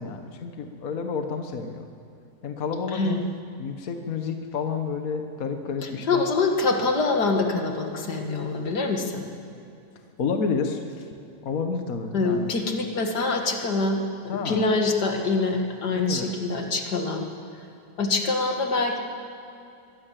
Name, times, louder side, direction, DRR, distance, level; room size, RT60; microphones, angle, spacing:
voice 1, 0.0-1.9 2.4-3.3 3.6-6.2 10.2-11.0 11.4-12.5 14.3-14.6 16.0-16.3, left 5 dB, 60° left, 5 dB, 1.7 m, -30 dB
voice 2, 2.9-3.2 6.1-9.3 12.1-17.3 18.0-19.0, left 3 dB, 85° left, 3 dB, 2.6 m, -25 dB
23.5 x 17.0 x 7.6 m, 2.7 s
omnidirectional pair, 1.7 m